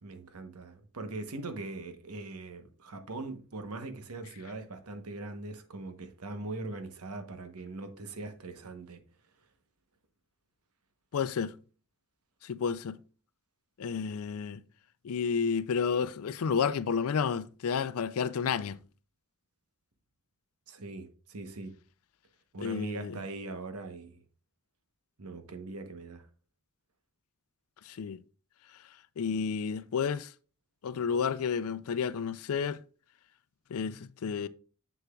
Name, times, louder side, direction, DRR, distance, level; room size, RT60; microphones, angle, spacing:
voice 1, 0.0-9.0 20.7-21.7 22.5-24.2 25.2-26.3, right 2 dB, 85° right, 1.0 m, -41 dB
voice 2, 11.1-11.5 12.4-13.0 13.8-14.6 15.0-18.8 22.6-23.2 27.9-28.2 29.2-30.3 30.8-32.8 33.7-34.5, left 6 dB, 70° left, 0.4 m, -31 dB
7.2 x 6.7 x 2.4 m
head